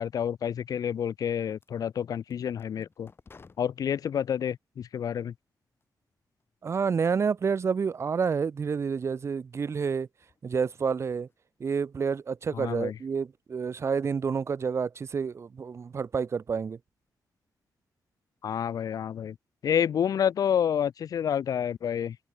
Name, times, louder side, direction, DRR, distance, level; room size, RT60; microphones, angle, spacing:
voice 1, 0.0-3.1 3.6-5.3 12.5-13.0 18.4-19.4 19.6-22.2, left 8 dB, 60° left, 0.6 m, -29 dB
sound 1, 1.4-4.5 5.2-6.0 6.4-7.1 7.4-7.7 8.2-8.3 9.0-9.1 10.0-10.4 10.7-11.3, left 4 dB, 35° left, 7.2 m, -58 dB
voice 2, 6.6-10.1 10.4-11.3 11.6-16.8, right 6 dB, 40° right, 1.2 m, -29 dB
wide cardioid pair, 130°, 7 cm